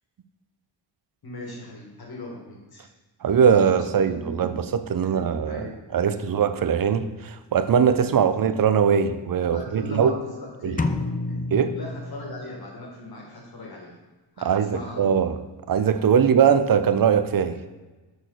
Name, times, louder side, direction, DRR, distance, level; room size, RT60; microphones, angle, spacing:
voice 1, 1.2-2.9 3.5-4.8 5.0-6.3 8.0-8.2 8.9-9.1 9.5-11.4 11.7-14.0 14.3-15.1, left 1 dB, 55° left, -1 dB, 1.6 m, -39 dB
voice 2, 3.2-10.1 10.6-10.8 11.5-11.7 14.4-15.4 15.7-17.6, right 7 dB, 50° right, 11 dB, 0.5 m, -21 dB
sound 1, 10.8-12.7, left 3 dB, 20° left, 0.3 m, -29 dB
6.4 x 6.3 x 3.9 m, 1.2 s
wide cardioid pair, 150°, 44 cm